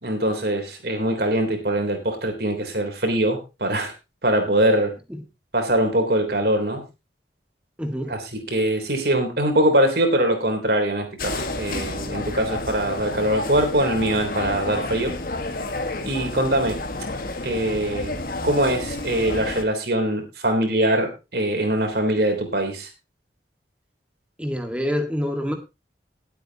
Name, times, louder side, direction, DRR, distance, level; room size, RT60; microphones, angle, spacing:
voice 1, 0.0-3.9 4.2-4.9 5.5-6.8 8.1-15.1 16.0-16.8 17.4-22.9, right 1 dB, 60° right, 5 dB, 3.5 m, -22 dB
voice 2, 7.8-8.1 24.4-25.5, equal, 5° right, 4 dB, 1.8 m, -26 dB
sound 1, 11.2-19.7, left 2 dB, 50° left, 1.6 m, -30 dB
19.0 x 8.3 x 2.9 m, 0.27 s
head